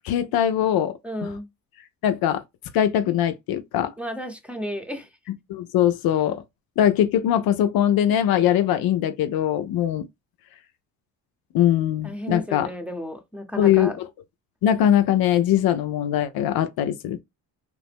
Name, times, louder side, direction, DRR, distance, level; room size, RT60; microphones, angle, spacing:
voice 1, 0.0-0.9 2.0-2.4 2.7-3.9 5.5-6.4 6.8-10.1 11.5-12.7 13.6-14.1 14.6-17.2, left 10 dB, 60° left, 0.5 m, -21 dB
voice 2, 1.0-1.5 4.0-5.1 12.0-14.0, equal, 5° right, 0.8 m, -32 dB
3.0 x 2.0 x 3.3 m
supercardioid pair, 75°, 40 cm